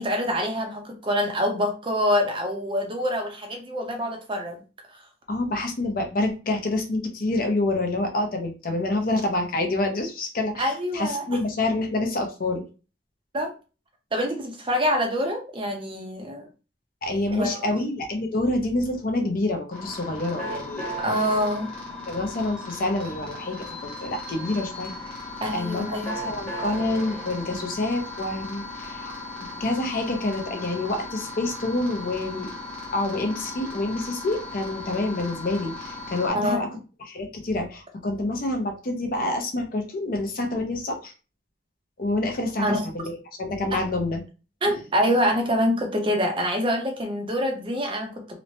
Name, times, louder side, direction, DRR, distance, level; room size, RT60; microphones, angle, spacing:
voice 1, 0.0-4.6 4.9-5.0 10.6-11.2 13.3-13.5 14.1-16.5 17.3-17.7 21.0-21.7 25.4-26.1 36.3-36.6 42.6-42.9 43.7-43.8 44.6-48.3, equal, 25° right, 3 dB, 0.5 m, -25 dB
voice 2, 5.3-12.6 17.0-20.9 22.1-24.9 25.5-32.5 32.9-36.7 37.0-41.1 42.0-44.2 44.7-44.8, left 2 dB, 45° left, 4 dB, 0.6 m, -27 dB
sound 1, 19.7-36.3, left 2 dB, 5° left, 0.9 m, -37 dB
3.0 x 2.1 x 2.6 m, 0.33 s
head